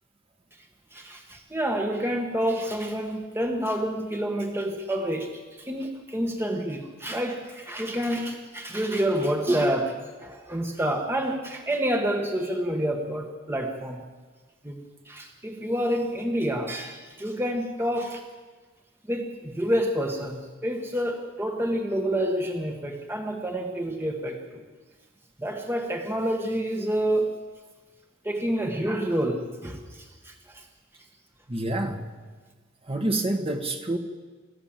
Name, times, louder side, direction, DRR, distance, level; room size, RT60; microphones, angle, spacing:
voice 1, 0.9-5.3 5.6-14.0 14.6-14.8 15.1-18.2 19.1-24.6 25.4-27.3 28.2-30.6, right 1 dB, 10° right, 2 dB, 1.5 m, -28 dB
voice 2, 31.5-32.1 32.8-34.0, right 1 dB, 30° right, 4 dB, 1.7 m, -27 dB
26.5 x 13.5 x 7.6 m, 1.4 s
head